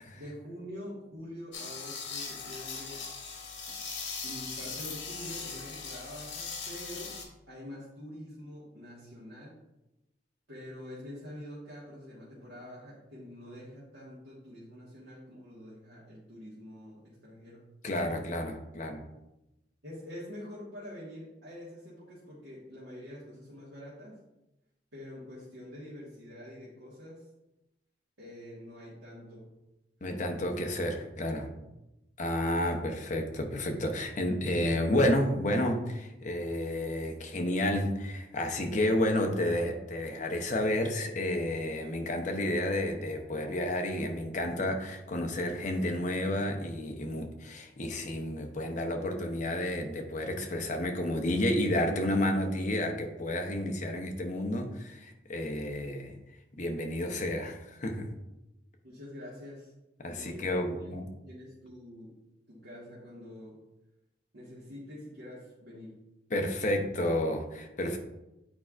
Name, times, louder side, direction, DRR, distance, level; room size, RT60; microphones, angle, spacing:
voice 1, 0.1-3.0 4.2-7.2 7.5-9.6 10.5-17.7 19.8-24.2 24.9-27.3 28.2-29.5 31.5-31.6 58.8-59.7 60.1-60.5 60.8-62.2 62.5-63.6 64.3-66.0, left 1 dB, 85° right, -8 dB, 1.6 m, -46 dB
sound 1, 1.5-7.2, left 5 dB, 80° left, 1.3 m, -39 dB
voice 2, 17.8-19.0 30.0-31.5 32.2-56.1 56.6-58.1 60.0-61.0 66.3-68.0, left 1 dB, 40° left, 3 dB, 0.7 m, -31 dB
8.7 x 4.4 x 2.4 m, 0.93 s
head